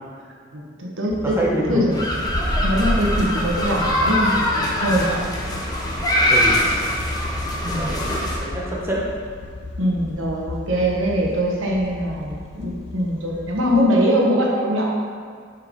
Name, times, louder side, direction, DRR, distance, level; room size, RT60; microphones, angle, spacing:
voice 1, 0.5-1.1 1.7-1.9 2.6-5.2 7.6-8.0 9.8-14.9, equal, 80° right, -2 dB, 1.4 m, -22 dB
sound 1, 1.1-13.8, left 2 dB, 55° left, 0.6 m, -37 dB
voice 2, 1.2-1.8 6.3-6.7 7.6-8.1 8.4-9.1, right 1 dB, 10° right, -4 dB, 1.1 m, -25 dB
sound 2, 1.9-8.4, equal, 20° left, 0.9 m, -22 dB
7.0 x 4.6 x 5.3 m, 2.1 s
head